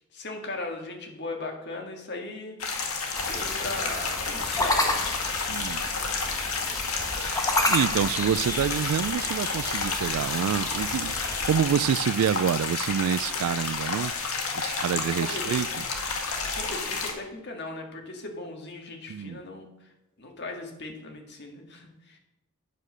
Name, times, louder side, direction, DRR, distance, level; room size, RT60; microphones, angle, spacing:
voice 1, 0.1-2.6 3.3-5.0 15.2-15.9 16.5-19.9 20.2-22.2, left 2 dB, 55° left, 1.9 m, -38 dB
sound 1, 2.6-17.1, left 4 dB, 90° left, 1.8 m, -31 dB
sound 2, 3.1-11.6, left 2 dB, 15° left, 1.1 m, -31 dB
voice 2, 5.5-5.9 7.7-14.1 14.6-15.7 19.1-19.4, right 8 dB, 75° right, 0.3 m, -27 dB
9.4 x 6.5 x 6.3 m
head